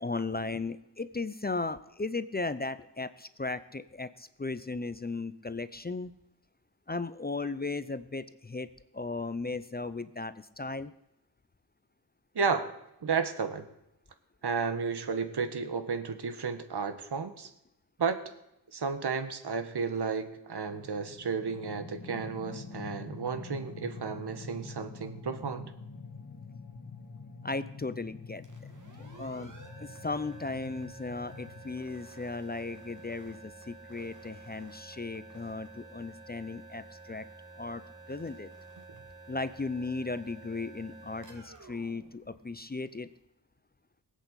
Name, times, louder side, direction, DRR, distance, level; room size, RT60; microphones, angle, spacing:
voice 1, 0.0-6.1 6.9-8.7 8.9-10.9 27.4-28.5 29.1-29.5 29.8-37.3 37.6-37.8 38.1-38.5 39.3-43.1, left 3 dB, 20° left, 13 dB, 0.7 m, -36 dB
voice 2, 12.3-12.7 13.0-13.6 14.4-17.5 18.0-18.2 18.7-25.7, right 5 dB, 65° right, 9 dB, 1.7 m, -32 dB
sound 1, 20.6-31.7, left 4 dB, 45° left, 1.8 m, -46 dB
sound 2, 28.4-43.0, right 3 dB, 45° right, 3.0 m, -51 dB
18.5 x 8.4 x 8.2 m, 0.86 s
cardioid pair, 70°, 42 cm